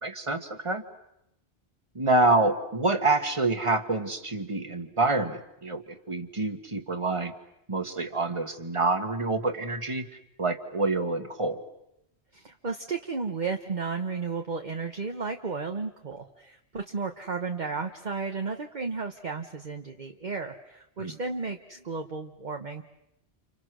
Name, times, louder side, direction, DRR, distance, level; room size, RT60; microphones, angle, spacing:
voice 1, 0.0-0.8 2.0-7.3 7.7-10.0 10.4-11.6 21.0-21.1, right 2 dB, 30° right, 8 dB, 1.8 m, -27 dB
voice 2, 12.3-22.8, right 4 dB, 45° right, 4 dB, 1.3 m, -33 dB
30.0 x 29.5 x 6.3 m, 0.83 s
omnidirectional pair, 1.1 m